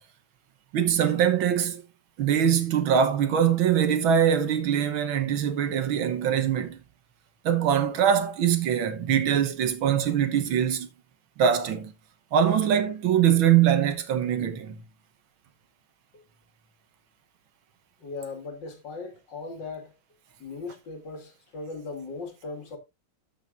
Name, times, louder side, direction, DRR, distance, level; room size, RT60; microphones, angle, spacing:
voice 1, 0.7-1.8 2.2-6.8 7.5-10.9 11.4-11.9 12.3-14.8, right 9 dB, 80° right, 1.9 m, -23 dB
voice 2, 18.0-19.9 20.4-22.8, left 3 dB, 60° left, 2.6 m, -38 dB
14.0 x 6.0 x 2.5 m
omnidirectional pair, 2.2 m